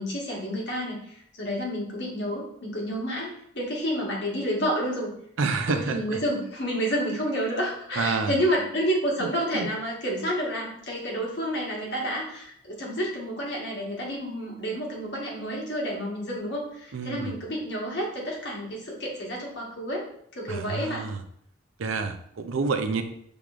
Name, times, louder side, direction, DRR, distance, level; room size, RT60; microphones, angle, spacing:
voice 1, 0.0-5.1 5.7-20.0 20.3-21.1, equal, 55° left, -3 dB, 1.3 m, -30 dB
voice 2, 5.4-6.2 8.0-8.4 9.2-9.7 16.9-17.4 20.5-21.2 21.8-23.0, right 4 dB, 80° right, 8 dB, 0.5 m, -29 dB
5.9 x 3.5 x 2.4 m, 0.69 s
head